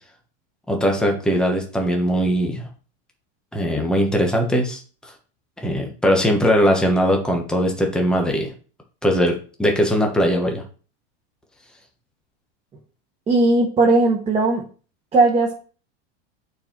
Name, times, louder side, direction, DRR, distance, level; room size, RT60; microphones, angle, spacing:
voice 1, 0.7-2.7 3.5-5.1 5.6-8.5 9.0-10.6, equal, ahead, 1 dB, 1.2 m, -20 dB
voice 2, 13.3-14.6 15.1-15.6, right 2 dB, 15° right, -3 dB, 1.6 m, -17 dB
8.6 x 4.6 x 4.5 m, 0.39 s
supercardioid pair, 150°, 35 cm